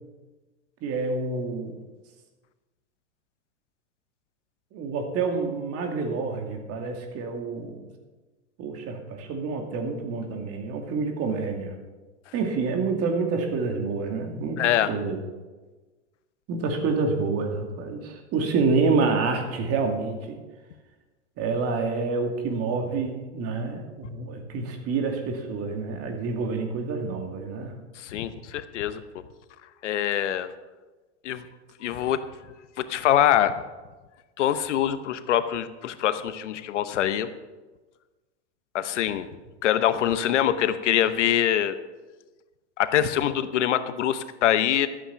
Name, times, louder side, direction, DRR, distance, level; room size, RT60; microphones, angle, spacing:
voice 1, 0.8-1.8 4.7-7.9 8.6-11.7 12.3-15.2 16.5-20.4 21.4-27.8, right 4 dB, 40° right, 4 dB, 2.5 m, -28 dB
voice 2, 14.6-14.9 28.0-29.0 29.8-30.5 31.2-31.4 31.8-32.2 32.8-33.5 34.4-37.3 38.7-39.3 39.6-41.8 42.8-44.9, left 11 dB, 80° left, 12 dB, 1.0 m, -24 dB
13.5 x 8.8 x 5.7 m, 1.2 s
hypercardioid pair, 110°, 35 cm